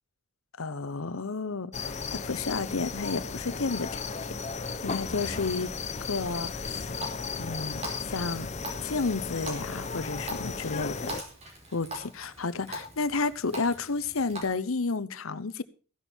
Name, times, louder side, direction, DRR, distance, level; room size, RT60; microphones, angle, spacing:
voice 1, 0.6-4.0 4.8-5.7 6.1-6.9 7.4-8.5 8.8-11.1 11.7-15.6, left 4 dB, 90° left, 15 dB, 0.9 m, -31 dB
sound 1, 1.7-11.2, left 4 dB, 35° left, 0.9 m, -35 dB
Water tap faucet, 6.3-14.4, right 1 dB, 30° right, 4.6 m, -43 dB
15.5 x 11.0 x 4.5 m, 0.37 s
head